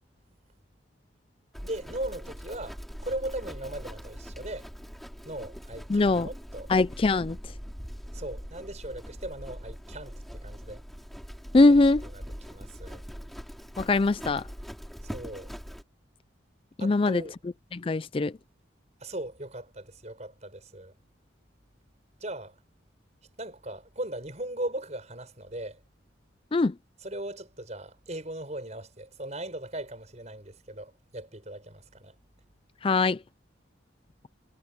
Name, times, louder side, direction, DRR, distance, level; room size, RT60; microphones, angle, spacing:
Livestock farm animals working animals, 1.5-15.8, equal, ahead, 6.3 m, -42 dB
voice 1, 1.6-4.7 5.2-6.7 8.1-10.8 11.7-11.8 12.1-12.2 12.5-13.0 15.0-15.5 16.8-17.4 19.0-20.9 22.2-22.6 23.4-25.8 27.0-32.1, right 1 dB, 35° right, 6.8 m, -38 dB
voice 2, 5.9-6.3 6.7-7.4 11.5-12.0 13.8-14.4 16.8-17.2 17.7-18.3 26.5-26.7 32.8-33.2, left 3 dB, 30° left, 0.4 m, -22 dB
head